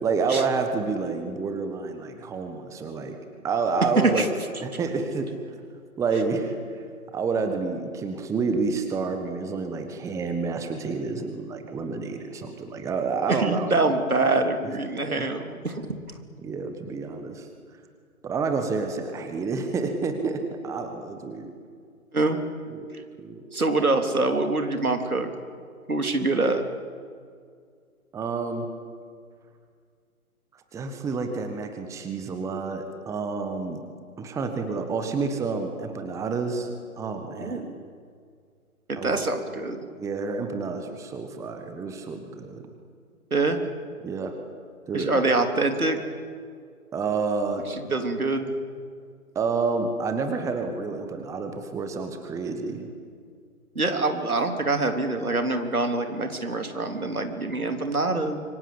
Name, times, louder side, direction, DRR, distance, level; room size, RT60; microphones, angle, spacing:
voice 1, 0.0-3.1 3.4-4.3 4.6-5.3 6.0-6.5 7.1-13.7 15.2-15.3 16.4-17.5 18.2-21.5 22.7-22.9 23.2-23.4 28.1-28.7 30.7-33.8 34.2-36.7 37.0-37.6 39.0-39.2 40.0-42.6 44.0-44.3 44.9-45.2 46.9-47.6 49.3-52.9, right 4 dB, 5° right, 6 dB, 1.4 m, -29 dB
voice 2, 13.3-15.8 22.1-22.4 23.5-25.3 25.9-26.6 37.4-37.8 38.9-39.8 43.3-43.6 44.9-46.0 47.7-48.5 53.8-58.4, right 3 dB, 80° right, 6 dB, 3.6 m, -25 dB
26.5 x 24.5 x 8.7 m, 2.1 s
figure-of-eight pair, 130°, 43 cm